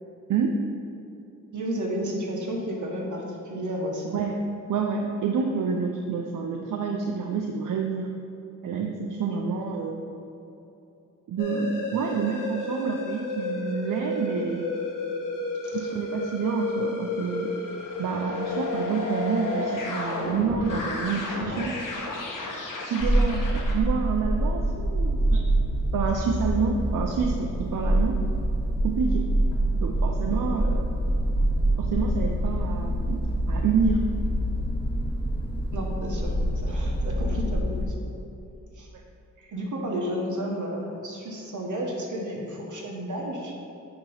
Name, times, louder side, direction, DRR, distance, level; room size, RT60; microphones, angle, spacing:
voice 1, 1.5-4.2 9.3-9.4 15.6-15.9 35.7-36.3 36.6-38.1 38.7-38.9 39.5-43.5, equal, 70° right, -1 dB, 1.4 m, -32 dB
voice 2, 4.7-8.1 8.6-10.0 11.3-14.7 15.7-17.5 18.0-22.0 22.9-25.4 25.9-28.2 28.8-29.3 29.7-31.0 31.8-34.1 39.4-39.5, right 5 dB, 85° right, 1 dB, 0.5 m, -28 dB
sound 1, 11.4-23.8, left 2 dB, 90° left, 1.1 m, -32 dB
sound 2, 23.0-37.9, right 1 dB, 15° left, 1.0 m, -25 dB
8.6 x 3.0 x 5.4 m, 2.8 s
wide cardioid pair, 90°, 31 cm